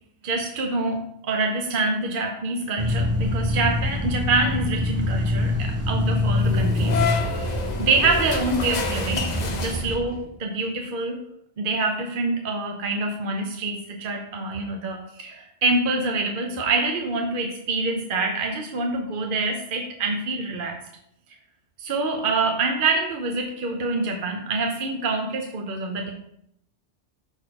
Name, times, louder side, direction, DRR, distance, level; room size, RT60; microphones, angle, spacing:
voice 1, 0.2-11.2 11.6-20.8 21.8-26.1, right 3 dB, 50° right, 2 dB, 0.9 m, -26 dB
sound 1, 2.8-10.0, left 1 dB, 15° right, 0.7 m, -25 dB
sound 2, 6.4-10.3, left 4 dB, 45° left, 0.7 m, -29 dB
6.6 x 4.2 x 4.7 m, 0.76 s
omnidirectional pair, 1.2 m